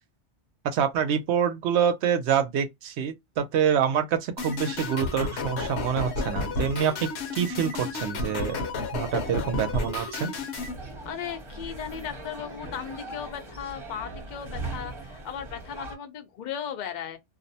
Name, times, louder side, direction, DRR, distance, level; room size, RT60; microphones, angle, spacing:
voice 1, 0.6-8.6 8.9-10.3, right 8 dB, 75° right, 0.8 m, -26 dB
sound 1, 4.4-10.7, left 3 dB, 70° left, 0.9 m, -31 dB
sound 2, 10.6-16.0, right 2 dB, 30° right, 1.0 m, -39 dB
voice 2, 11.0-17.2, left 8 dB, 50° left, 0.6 m, -36 dB
2.5 x 2.0 x 2.6 m
omnidirectional pair, 1.2 m